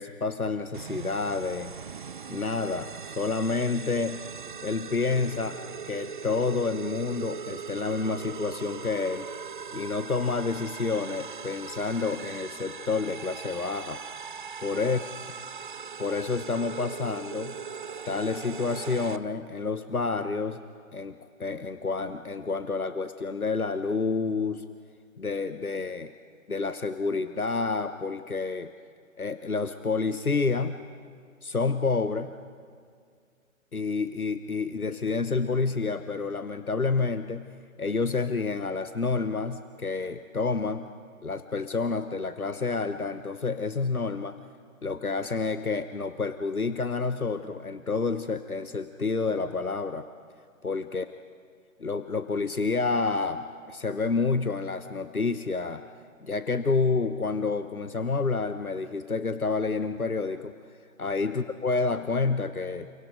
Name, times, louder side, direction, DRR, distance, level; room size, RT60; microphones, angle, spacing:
voice 1, 0.0-1.8 2.3-4.2 4.6-5.6 5.9-9.3 9.7-14.0 14.6-15.0 16.0-17.6 18.0-20.6 20.9-24.6 25.2-26.1 26.5-28.7 29.2-30.8 31.4-32.3 33.7-37.5 37.8-40.9 41.2-44.4 44.8-50.1 50.6-51.0 51.8-55.8 56.2-60.5 61.0-62.9, left 4 dB, 90° left, 10 dB, 1.1 m, -29 dB
sound 1, 0.7-19.2, right 6 dB, 35° right, 0.6 m, -40 dB
30.0 x 28.0 x 5.2 m, 2.1 s
figure-of-eight pair, 135°, 42 cm